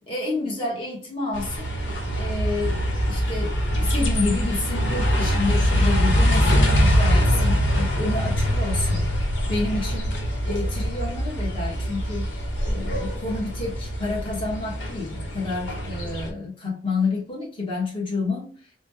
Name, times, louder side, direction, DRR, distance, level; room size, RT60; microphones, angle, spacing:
voice 1, 0.1-1.7 2.1-9.2 9.5-10.1 10.4-12.3 12.6-18.7, left 3 dB, 30° left, 1.2 m, -29 dB
sound 1, 1.3-16.3, equal, 90° left, 0.9 m, -23 dB
3.8 x 2.2 x 3.2 m
head